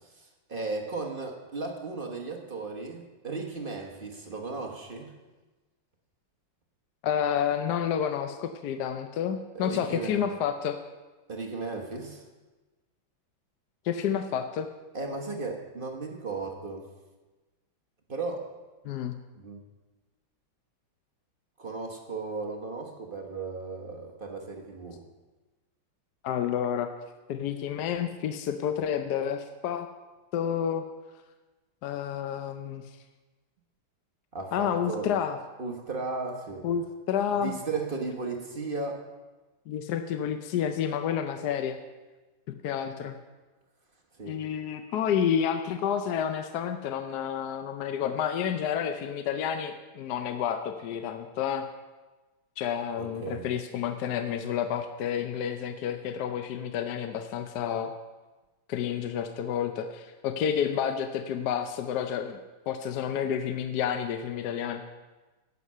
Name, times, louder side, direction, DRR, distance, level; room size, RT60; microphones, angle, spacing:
voice 1, 0.2-5.1 9.5-10.2 11.3-12.2 14.9-16.9 18.1-18.5 19.4-19.6 21.6-25.0 34.3-35.1 35.6-36.7 37.4-39.0 44.2-44.4 53.0-53.5, right 3 dB, 35° right, 2 dB, 0.9 m, -35 dB
voice 2, 7.0-10.8 13.8-14.7 18.8-19.2 26.2-26.9 27.3-29.9 30.3-30.9 31.8-32.8 34.5-35.4 36.6-37.5 39.7-41.8 42.5-43.2 44.2-51.7 52.6-57.9 58.7-62.4 62.7-64.8, left 8 dB, 70° left, 7 dB, 1.0 m, -30 dB
11.0 x 8.4 x 5.5 m, 1.2 s
omnidirectional pair, 2.2 m